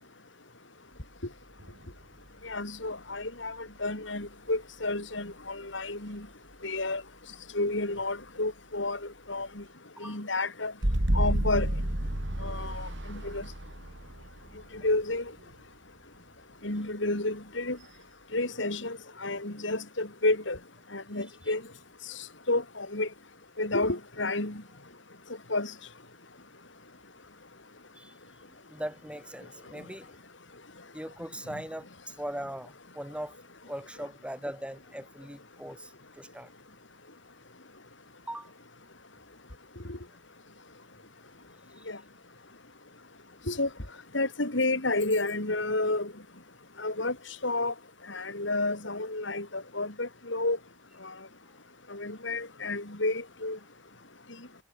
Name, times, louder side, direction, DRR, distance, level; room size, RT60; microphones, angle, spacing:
sound 1, 1.6-2.5 4.2-4.3 10.8-15.5, right 1 dB, 65° right, 3.0 m, -30 dB
voice 1, 2.4-6.3 6.6-7.0 7.5-9.0 9.3-9.6 10.0-10.7 11.1-11.7 12.4-13.4 14.8-15.2 16.6-17.8 18.3-20.6 20.9-21.6 22.5-23.1 23.6-24.6 25.5-25.7 39.9-40.0 41.9-42.0 43.5-43.7 44.1-46.1 46.8-47.1 47.4-47.7 48.1-50.6 51.9-53.6, left 2 dB, 65° left, 3.9 m, -30 dB
voice 2, 28.7-30.2 30.9-33.4 33.7-36.5 38.3-38.5 41.8-41.9, right 1 dB, 5° right, 5.4 m, -40 dB
head